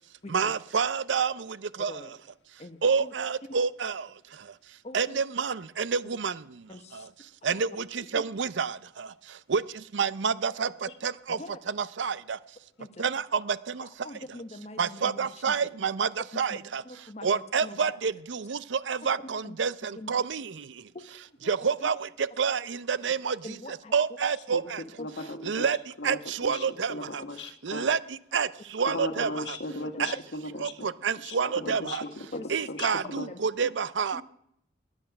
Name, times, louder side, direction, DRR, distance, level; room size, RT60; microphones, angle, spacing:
voice 1, 0.3-2.0 2.8-4.6 4.9-7.1 7.4-9.6 9.9-10.7 11.0-11.4 11.7-12.4 13.0-13.9 14.8-16.8 17.2-20.9 21.5-23.4 23.9-24.8 25.4-25.8 26.0-27.2 27.6-28.5 28.7-29.3 30.0-30.2 30.6-32.0 32.5-34.2, right 6 dB, 80° right, 0.6 m, -29 dB
voice 2, 2.6-3.1 3.5-3.6 4.8-5.2 6.7-7.1 7.5-7.6 8.1-8.2 11.3-11.6 12.8-12.9 13.8-15.6 16.3-18.0 19.2-19.6 19.9-20.1 20.9-21.5 21.8-21.9 23.4-23.9 24.6-25.7 27.2-27.3 27.7-27.8 29.7-30.2 31.4-31.7 32.3-33.7 34.1-34.2, left 1 dB, 35° left, 1.0 m, -44 dB
voice 3, 25.0-25.7 26.0-27.9 28.9-30.9 31.2-32.4 32.7-32.9 33.2-33.3, left 2 dB, 75° left, 1.5 m, -37 dB
20.5 x 8.9 x 5.9 m
head